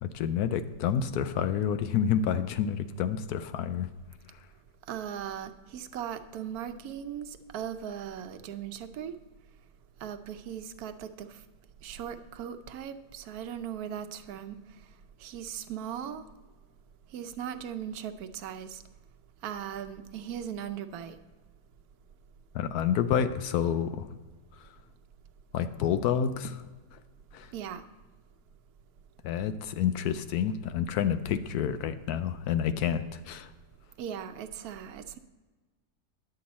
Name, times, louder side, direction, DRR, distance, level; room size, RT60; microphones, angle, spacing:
voice 1, 0.0-3.9 22.5-24.1 24.6-24.7 25.5-27.0 27.3-27.5 29.2-33.5, left 8 dB, 75° left, 11 dB, 1.1 m, -29 dB
voice 2, 4.9-9.1 10.0-11.3 11.8-14.6 15.2-16.2 17.1-18.8 19.4-21.1 27.5-27.8 34.0-35.2, right 9 dB, 75° right, 9 dB, 1.1 m, -38 dB
10.0 x 7.8 x 4.1 m, 1.3 s
omnidirectional pair, 1.7 m